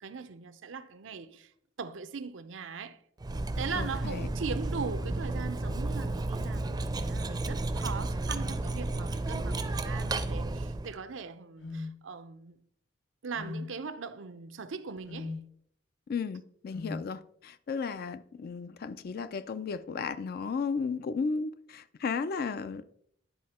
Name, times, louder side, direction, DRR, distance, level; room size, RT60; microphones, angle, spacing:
voice 1, 0.0-1.5 1.8-3.0 3.6-12.6 13.2-15.4, right 5 dB, 90° right, 0.6 m, -40 dB
Cutlery silverware, 3.2-10.9, right 2 dB, 20° right, 0.5 m, -32 dB
voice 2, 3.8-4.3 16.1-22.9, left 5 dB, 50° left, 0.4 m, -34 dB
sound 1, 11.6-11.9 13.3-13.7 15.1-15.4 16.7-17.0, left 3 dB, 80° left, 1.1 m, -37 dB
10.5 x 4.2 x 4.2 m
head